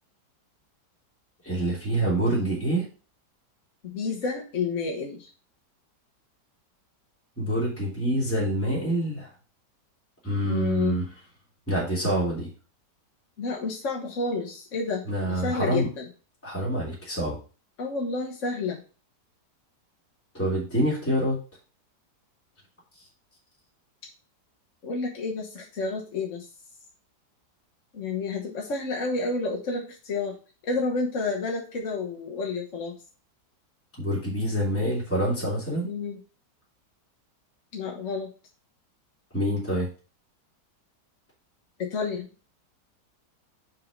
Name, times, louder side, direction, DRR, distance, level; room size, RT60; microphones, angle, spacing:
voice 1, 1.4-2.8 7.4-9.3 10.2-11.1 11.7-12.5 15.1-15.9 16.4-17.4 20.3-21.4 34.0-35.9 39.3-39.9, right 1 dB, 5° left, -7 dB, 3.0 m, -26 dB
voice 2, 3.8-5.3 10.4-11.0 13.4-16.1 17.8-18.8 24.8-26.5 27.9-30.4 30.6-32.9 35.8-36.2 37.7-38.3 41.8-42.3, left 4 dB, 50° left, -2 dB, 1.5 m, -30 dB
5.5 x 5.5 x 5.2 m, 0.35 s
omnidirectional pair, 1.8 m